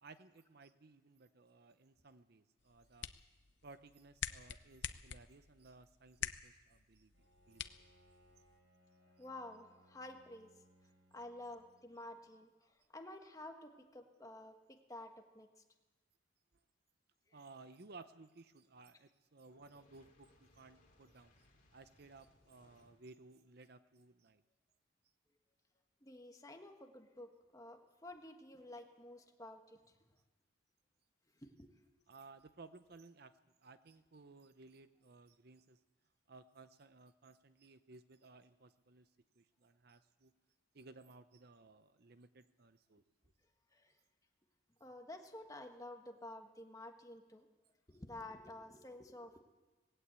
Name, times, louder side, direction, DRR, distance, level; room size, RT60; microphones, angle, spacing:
voice 1, 0.0-3.1 3.6-7.9 17.3-21.5 21.7-24.4 32.1-33.3 33.6-35.8 36.3-39.1 39.4-40.3 40.7-43.0, right 3 dB, 50° right, 12 dB, 0.7 m, -59 dB
sound 1, 2.6-8.6, left 9 dB, 60° left, 0.8 m, -48 dB
Bowed string instrument, 7.1-12.5, equal, 70° right, 4.5 m, -70 dB
voice 2, 9.2-10.5 11.1-15.5 17.3-17.4 26.0-29.9 31.4-31.7 43.7-43.9 44.8-47.5 47.9-49.4, left 1 dB, 15° left, 4 dB, 1.5 m, -51 dB
Fire, 19.5-23.1, left 1 dB, 40° left, 2.7 m, -69 dB
19.5 x 17.0 x 8.2 m, 1.2 s
head